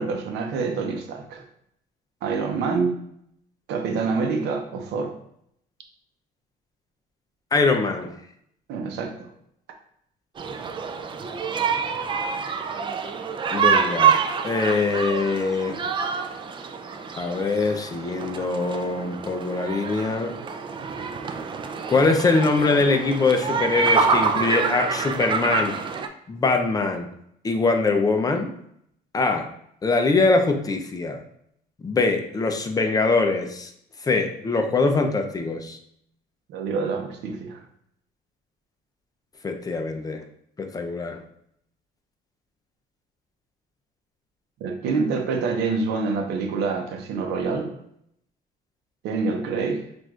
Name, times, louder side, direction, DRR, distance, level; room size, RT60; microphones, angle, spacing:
voice 1, 0.0-1.4 2.2-3.0 3.7-5.1 8.7-9.3 36.5-37.6 44.6-47.7 49.0-49.8, right 4 dB, 85° right, 4 dB, 0.7 m, -26 dB
voice 2, 7.5-8.1 13.5-14.2 14.4-15.8 17.2-20.3 21.9-25.8 26.3-27.1 27.4-28.5 29.1-29.5 29.8-31.2 31.8-33.7 34.0-35.8 39.4-40.2 40.6-41.2, left 3 dB, 20° left, 4 dB, 0.5 m, -23 dB
sound 1, 10.4-26.1, right 5 dB, 30° right, 0.3 m, -26 dB
5.9 x 2.5 x 2.4 m, 0.72 s
cardioid pair, 110°, 17 cm